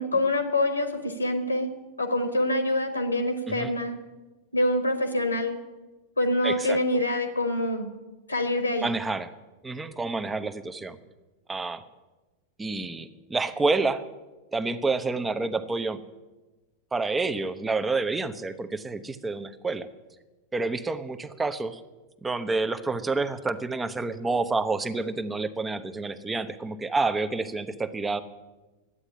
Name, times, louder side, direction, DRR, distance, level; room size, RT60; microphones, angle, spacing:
voice 1, 0.0-1.7 2.0-4.0 4.5-5.6 6.2-7.9 8.3-8.9, left 1 dB, 85° left, 8 dB, 1.2 m, -25 dB
voice 2, 6.4-6.8 8.8-9.3 9.6-11.0 11.5-11.8 12.6-14.0 14.5-16.0 16.9-19.9 20.5-21.8 22.2-28.2, right 3 dB, 10° right, 12 dB, 0.8 m, -28 dB
11.5 x 8.9 x 9.7 m, 1.2 s
figure-of-eight pair, 90°, 0 cm